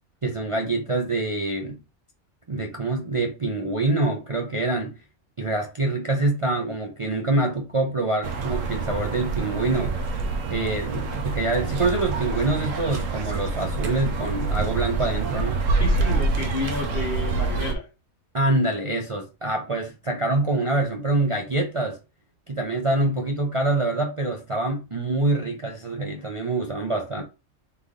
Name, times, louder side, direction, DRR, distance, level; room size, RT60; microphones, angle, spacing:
voice 1, 0.2-1.8 2.5-5.0 5.4-9.9 10.5-15.6 18.3-22.0 22.5-27.2, right 2 dB, 35° right, 0.5 m, -25 dB
sound 1, 8.2-17.7, right 3 dB, 75° right, 1.1 m, -26 dB
voice 2, 15.8-17.9, left 4 dB, 50° left, 0.8 m, -30 dB
3.8 x 3.5 x 3.6 m
omnidirectional pair, 1.4 m